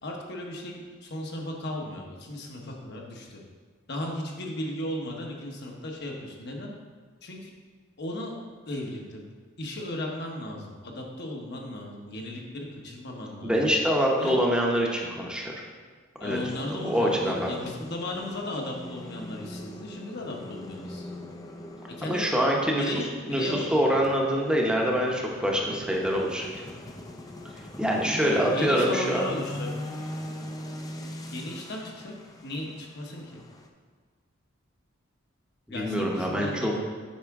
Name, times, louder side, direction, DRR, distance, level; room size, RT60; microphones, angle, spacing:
voice 1, 0.0-3.4 3.9-6.7 7.2-7.5 8.0-8.3 8.7-9.3 9.6-13.6 14.2-14.4 16.2-21.3 21.9-22.3 22.7-24.0 28.0-29.7 31.3-32.1 32.4-33.4 35.7-36.8, left 1 dB, 55° left, 0 dB, 1.1 m, -36 dB
voice 2, 13.4-15.6 16.2-16.4 16.8-17.5 22.0-22.8 23.3-26.5 27.8-29.2 35.7-36.7, equal, 5° right, -1 dB, 0.8 m, -25 dB
sound 1, 16.3-33.7, left 1 dB, 20° left, 0.5 m, -41 dB
8.5 x 5.7 x 3.6 m, 1.5 s
head